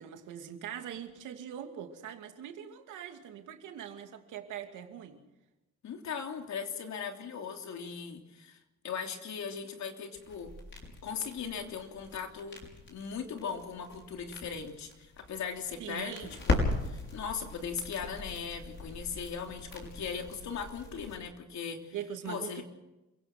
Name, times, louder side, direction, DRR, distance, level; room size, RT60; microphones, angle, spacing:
voice 1, 0.0-5.2 15.8-16.3 21.9-22.6, right 9 dB, 85° right, 5 dB, 2.6 m, -42 dB
voice 2, 5.8-8.6 8.8-10.5 11.0-12.6 12.9-21.9 22.2-22.6, left 6 dB, 65° left, 4 dB, 3.2 m, -39 dB
sound 1, 10.1-21.2, left 3 dB, 40° left, 6.2 m, -38 dB
27.5 x 17.0 x 6.1 m, 0.99 s
cardioid pair, 90°, 30 cm